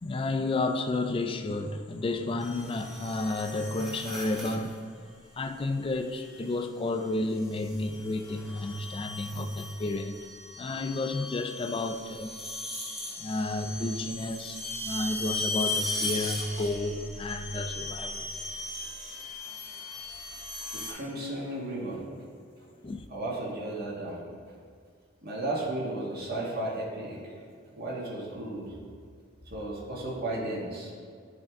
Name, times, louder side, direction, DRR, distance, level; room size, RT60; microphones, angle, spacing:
voice 1, 0.0-4.8 5.4-10.2 10.6-12.3 13.2-18.3 22.8-23.0, left 2 dB, 25° left, 0.3 m, -31 dB
sound 1, 2.4-4.8 6.1-6.5 7.4-20.9, left 2 dB, ahead, 1.0 m, -37 dB
voice 2, 20.7-22.0 23.1-24.2 25.2-27.3 27.7-28.7 29.4-30.9, right 1 dB, 50° right, 1.4 m, -34 dB
10.0 x 3.5 x 3.6 m
head